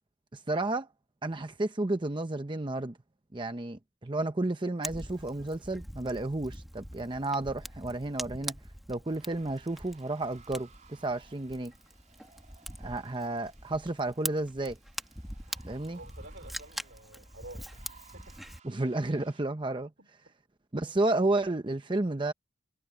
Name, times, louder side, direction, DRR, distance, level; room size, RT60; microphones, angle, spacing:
voice 1, 0.3-0.9 1.2-2.9 3.3-8.6 8.9-11.7 12.8-14.8 15.7-16.0 18.6-19.9 20.7-22.3, right 2 dB, 25° right, 0.8 m, -31 dB
Fire, 4.8-18.6, equal, ahead, 1.7 m, -43 dB
sound 1, 9.1-19.4, right 6 dB, 40° right, 4.3 m, -60 dB
voice 2, 15.8-17.8 18.1-18.4 20.0-20.1, right 2 dB, 75° right, 4.5 m, -50 dB
head